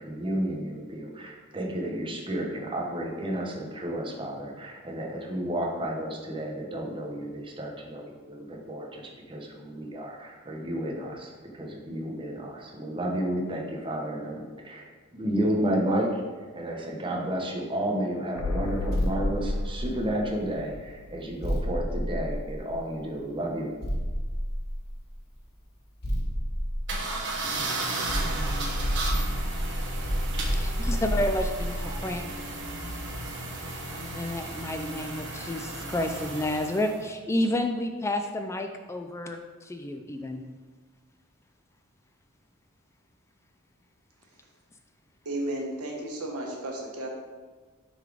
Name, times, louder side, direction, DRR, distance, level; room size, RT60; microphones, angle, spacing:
voice 1, 0.0-16.2 16.6-23.7, right 1 dB, 25° right, 0 dB, 0.9 m, -32 dB
sound 1, 18.4-22.1 22.4-22.5, left 2 dB, 75° left, 0.4 m, -34 dB
sound 2, 18.9-20.4 21.4-23.0 23.8-25.2 26.0-27.6 28.1-33.3, equal, 45° left, 1.3 m, -30 dB
sound 3, 26.9-37.0, right 2 dB, 55° right, 1.2 m, -35 dB
voice 2, 30.5-32.2 33.9-40.4, left 1 dB, 15° left, 5 dB, 0.3 m, -30 dB
voice 3, 45.2-47.1, right 1 dB, 85° right, 0 dB, 1.3 m, -33 dB
6.3 x 4.0 x 4.9 m, 1.4 s
head